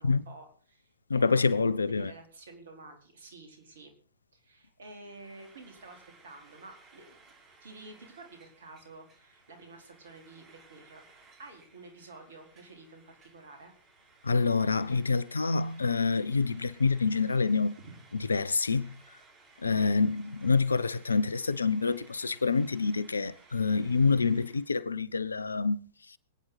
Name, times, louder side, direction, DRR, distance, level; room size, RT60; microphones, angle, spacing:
voice 1, 0.0-3.9 4.3-7.2 7.6-11.1 11.4-13.7 17.8-18.0 19.8-19.9, right 2 dB, 65° right, 4.5 m, -50 dB
voice 2, 1.1-2.1 14.2-17.7 18.1-18.9 19.6-25.8, left 4 dB, 80° left, 0.8 m, -27 dB
Frying (food), 5.0-24.7, right 4 dB, 25° right, 4.1 m, -59 dB
25.0 x 9.6 x 4.1 m
figure-of-eight pair, 105°, 0 cm